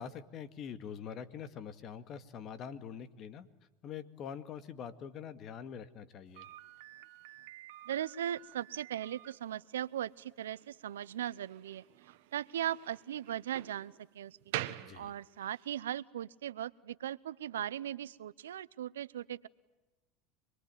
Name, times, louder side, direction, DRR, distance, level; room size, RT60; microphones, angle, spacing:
voice 1, 0.0-3.5 3.8-6.5 14.8-15.1, left 7 dB, 45° left, 11 dB, 2.1 m, -44 dB
Slam, 6.3-15.7, right 14 dB, 75° right, 1.4 m, -47 dB
voice 2, 7.9-11.8 12.3-14.5 14.9-19.5, right 11 dB, 90° right, 18 dB, 0.8 m, -38 dB
26.0 x 22.0 x 9.2 m, 1.1 s
hypercardioid pair, 90°, 0 cm